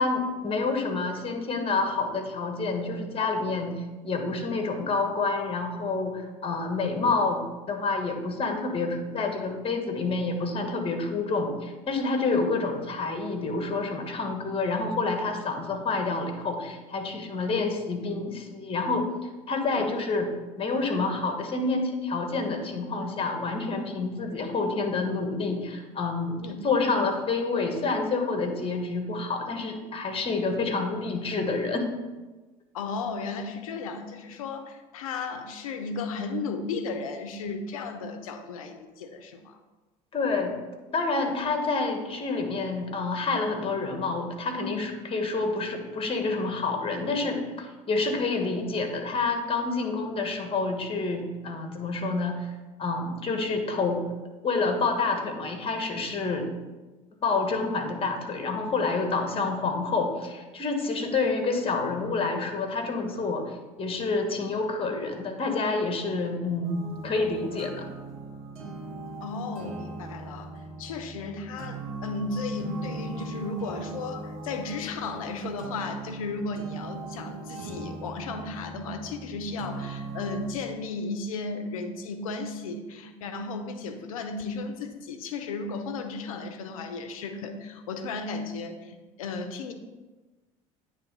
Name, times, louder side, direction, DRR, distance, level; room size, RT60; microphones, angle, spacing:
voice 1, 0.0-19.1 19.5-20.3 20.6-31.9 40.1-40.6 40.9-52.5 52.8-54.0 54.4-56.5 57.2-67.9, left 3 dB, 30° left, 5 dB, 1.5 m, -28 dB
voice 2, 32.7-39.6 69.2-70.5 70.8-89.7, left 3 dB, 90° left, 8 dB, 0.7 m, -34 dB
sound 1, 66.6-80.5, right 3 dB, 75° right, 1.2 m, -39 dB
9.1 x 3.4 x 5.3 m, 1.2 s
hypercardioid pair, 75°, 17 cm